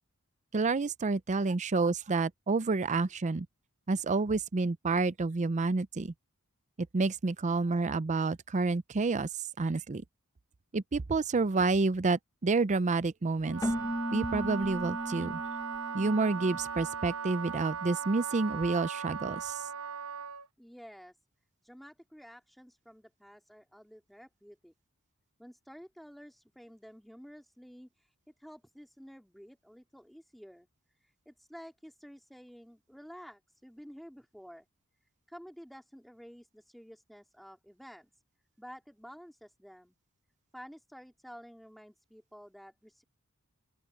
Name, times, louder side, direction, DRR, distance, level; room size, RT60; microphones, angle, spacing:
voice 1, 0.5-3.5 3.9-6.1 6.9-9.3 9.6-10.0 10.7-13.6 14.1-15.4 15.9-19.6, right 3 dB, 35° right, 0.5 m, -29 dB
Wind instrument woodwind instrument, 13.4-20.5, right 7 dB, 80° right, 1.1 m, -38 dB
Keyboard (musical), 13.6-17.2, left 1 dB, 15° left, 0.9 m, -37 dB
voice 2, 20.6-21.2 21.6-24.7 25.4-30.7 31.0-34.7 35.3-38.1 38.6-40.0 40.5-43.0, equal, ahead, 2.9 m, -51 dB
open air
head